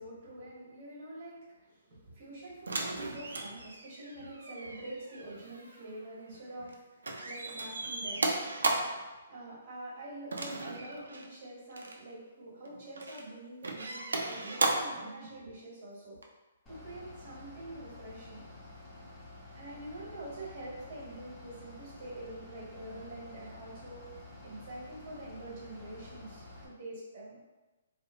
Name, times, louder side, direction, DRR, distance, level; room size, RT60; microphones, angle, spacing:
voice 1, 0.0-8.5 8.9-16.2 16.7-18.4 19.5-24.1 24.4-27.4, right 1 dB, 45° right, -6 dB, 1.3 m, -46 dB
sound 1, 2.7-6.7 7.0-9.1 10.3-11.3 11.7-12.0 12.6-13.3 13.6-15.0 16.2-16.3, right 2 dB, 85° right, 0.3 m, -35 dB
Bus / Idling, 16.7-26.7, left 2 dB, 15° left, 0.5 m, -50 dB
2.6 x 2.0 x 2.6 m, 1.2 s
hypercardioid pair, 145°, 0 cm